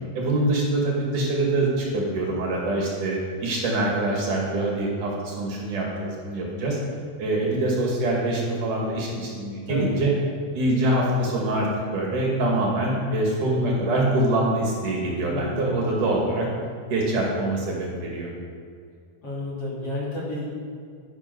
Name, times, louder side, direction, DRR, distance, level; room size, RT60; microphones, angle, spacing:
voice 1, 0.1-6.8 7.2-10.1 10.5-16.5 16.9-18.3, right 1 dB, 60° right, -2 dB, 3.5 m, -24 dB
voice 2, 9.7-10.2 15.3-15.8 19.2-20.5, left 1 dB, 40° left, -6 dB, 3.2 m, -31 dB
11.0 x 10.5 x 6.1 m, 2.2 s
omnidirectional pair, 4.3 m